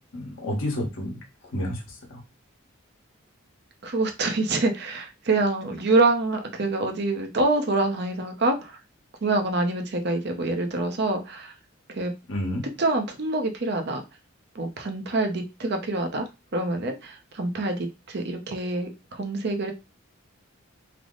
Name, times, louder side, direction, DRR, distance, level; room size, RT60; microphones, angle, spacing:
voice 1, 0.1-1.2 1.5-2.2 12.3-12.6, left 1 dB, 75° left, 0 dB, 1.1 m, -30 dB
voice 2, 3.8-8.8 9.2-11.5 11.9-12.1 12.8-14.0 14.5-19.7, right 2 dB, 50° right, 5 dB, 0.6 m, -26 dB
3.3 x 2.0 x 3.7 m, 0.26 s
head